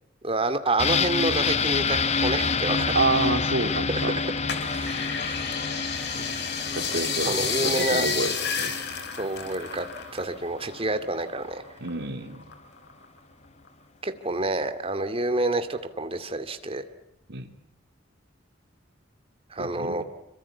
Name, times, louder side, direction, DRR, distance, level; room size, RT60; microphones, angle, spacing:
voice 1, 0.2-3.0 4.7-4.9 7.2-8.1 9.2-9.9 10.1-11.6 14.0-16.8 19.5-20.0, right 2 dB, 30° right, 9 dB, 2.4 m, -28 dB
sound 1, 0.8-10.4 10.7-10.8, left 5 dB, 35° left, 1.0 m, -28 dB
voice 2, 2.9-4.2 6.1-6.4 6.8-8.8 11.8-12.5 17.3-17.5 19.6-20.0, right 3 dB, 60° right, 6 dB, 3.3 m, -29 dB
sound 2, 4.5-10.3 10.6-11.9 12.3-13.2 13.7-13.8, left 6 dB, 55° left, 4.8 m, -31 dB
27.5 x 25.0 x 8.5 m, 0.81 s
head